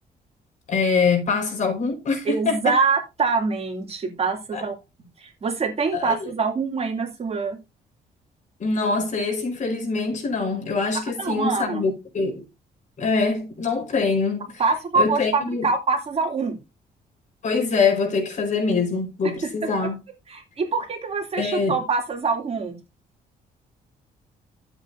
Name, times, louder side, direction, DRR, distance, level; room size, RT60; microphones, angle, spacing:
voice 1, 0.7-2.8 4.5-4.6 5.9-6.3 8.6-12.4 13.0-14.5 14.9-15.7 17.4-20.0 21.4-21.8, left 4 dB, 50° left, 4.8 m, -24 dB
voice 2, 2.2-4.7 5.2-7.6 11.2-11.8 14.6-16.6 20.3-22.8, right 4 dB, 40° right, 2.8 m, -24 dB
12.5 x 7.9 x 2.7 m
cardioid pair, 105°, 16 cm